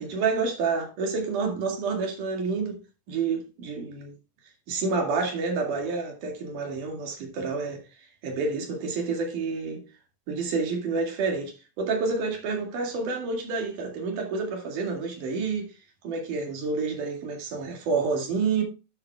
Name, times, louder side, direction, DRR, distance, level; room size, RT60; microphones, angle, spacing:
voice 1, 0.0-2.8 3.1-4.1 4.7-7.8 8.2-9.8 10.3-15.7 16.0-18.6, right 4 dB, 70° right, 3.8 m, -29 dB
11.0 x 8.3 x 2.3 m
omnidirectional pair, 3.7 m